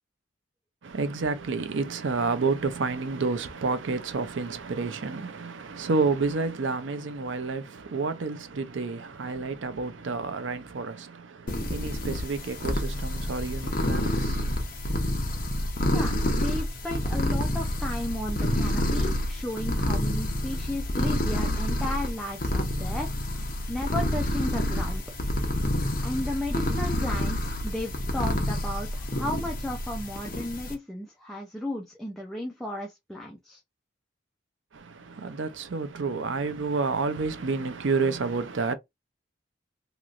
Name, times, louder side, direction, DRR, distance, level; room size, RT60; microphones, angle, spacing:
voice 1, 0.8-14.7 34.7-38.7, right 4 dB, 75° right, 0.6 m, -30 dB
sound 1, 11.5-30.7, left 1 dB, 45° left, 0.8 m, -28 dB
voice 2, 15.9-23.1 23.4-25.0 26.0-33.6, left 1 dB, ahead, 0.5 m, -34 dB
3.0 x 3.0 x 2.4 m
head